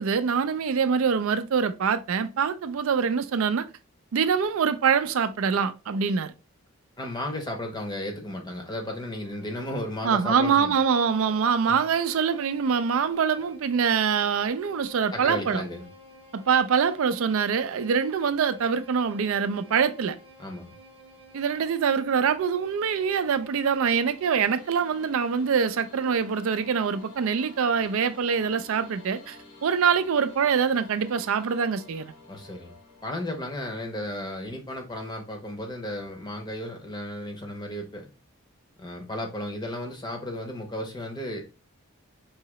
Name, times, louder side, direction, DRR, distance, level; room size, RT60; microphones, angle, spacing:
voice 1, 0.0-3.7 4.1-6.3 10.0-15.6 16.3-20.2 21.3-32.1, right 6 dB, 65° right, 0.4 m, -24 dB
voice 2, 7.0-10.7 11.7-11.8 15.1-15.8 20.4-20.7 32.3-32.7 33.0-38.1 38.8-41.4, left 1 dB, 20° left, 0.7 m, -34 dB
Bowed string instrument, 8.9-25.3, equal, 25° right, 0.7 m, -52 dB
sound 1, 23.8-33.9, left 2 dB, 90° left, 1.2 m, -50 dB
4.7 x 2.8 x 3.0 m
head